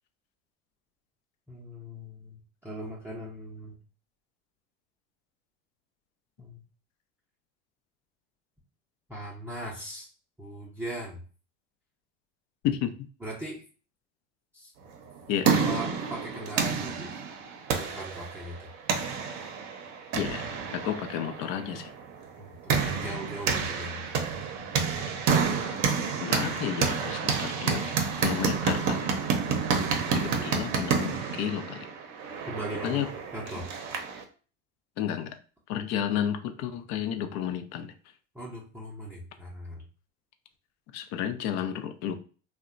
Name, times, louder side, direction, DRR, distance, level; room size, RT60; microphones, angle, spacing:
voice 1, 1.5-3.8 6.4-6.6 9.1-10.1 10.4-11.2 13.2-13.6 14.5-14.7 15.5-17.1 17.7-18.7 22.4-24.1 29.7-30.5 32.4-33.0 33.3-33.7 38.3-39.8, right 1 dB, 5° right, 0.6 m, -39 dB
sound 1, 15.0-34.2, right 5 dB, 50° right, 0.6 m, -29 dB
voice 2, 15.3-15.6 20.1-20.4 20.7-21.9 26.2-27.8 28.2-29.1 30.1-31.9 32.8-33.1 35.0-35.4 35.7-37.9 40.9-42.1, left 9 dB, 50° left, 0.4 m, -31 dB
2.7 x 2.2 x 2.5 m
hypercardioid pair, 90°, 36 cm